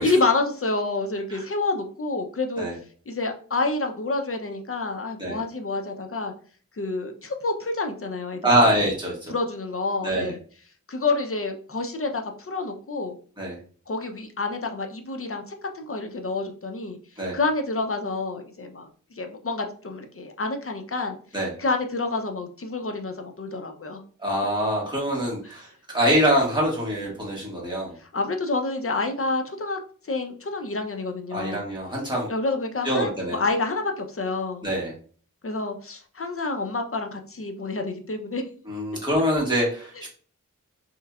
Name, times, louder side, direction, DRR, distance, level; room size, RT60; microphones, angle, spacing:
voice 1, 0.0-2.7 3.1-6.3 6.8-8.5 9.3-10.4 10.9-13.2 13.9-17.0 17.3-21.2 21.6-24.0 28.0-31.6 32.3-34.7 35.4-38.4, left 3 dB, 45° left, 5 dB, 0.6 m, -28 dB
voice 2, 8.4-9.3 10.0-10.3 13.4-13.5 17.2-17.4 21.3-21.5 24.2-25.7 25.9-27.9 31.3-32.3 32.8-33.4 34.6-34.9 38.7-40.1, equal, 15° right, -4 dB, 1.6 m, -24 dB
3.1 x 3.1 x 2.3 m, 0.43 s
wide cardioid pair, 45°, 32 cm